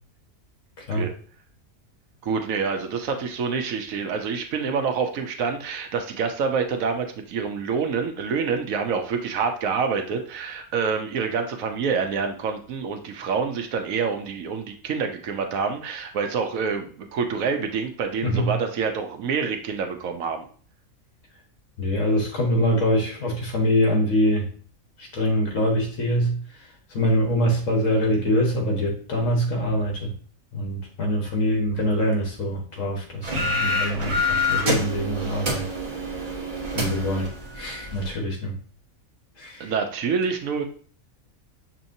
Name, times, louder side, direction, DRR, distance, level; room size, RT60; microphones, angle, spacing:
voice 1, 2.2-20.5 39.6-40.6, right 5 dB, 75° right, 5 dB, 1.1 m, -27 dB
voice 2, 18.2-18.5 21.8-24.5 25.1-26.4 26.9-30.1 30.5-35.6 36.7-37.3 37.6-38.6 39.4-39.7, equal, 65° left, 0 dB, 1.6 m, -24 dB
sound 1, 33.2-38.1, left 2 dB, 35° right, 1.2 m, -27 dB
6.3 x 2.9 x 2.6 m, 0.43 s
omnidirectional pair, 1.5 m